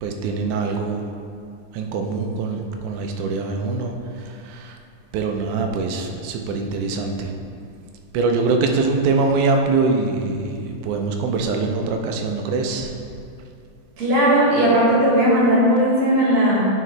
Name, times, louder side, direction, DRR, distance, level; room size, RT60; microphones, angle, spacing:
voice 1, 0.0-1.1 1.7-4.8 5.1-7.3 8.1-12.9, right 3 dB, 80° right, 3 dB, 2.1 m, -23 dB
voice 2, 14.0-16.7, right 1 dB, 60° right, -7 dB, 2.9 m, -17 dB
9.5 x 5.4 x 3.2 m, 2.4 s
omnidirectional pair, 3.6 m